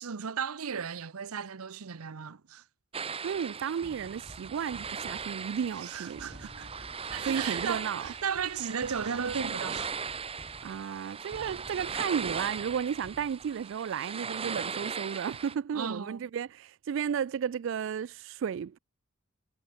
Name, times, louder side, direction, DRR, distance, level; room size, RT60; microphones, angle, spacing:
voice 1, 0.0-2.6 5.8-6.7 7.1-9.9 15.7-16.2, right 6 dB, 85° right, 0.7 m, -35 dB
sound 1, 2.9-15.5, right 6 dB, 25° right, 1.0 m, -38 dB
voice 2, 3.2-6.5 7.2-8.1 10.6-18.8, right 7 dB, 60° right, 0.3 m, -33 dB
sound 2, 3.8-13.8, equal, 20° left, 3.5 m, -53 dB
head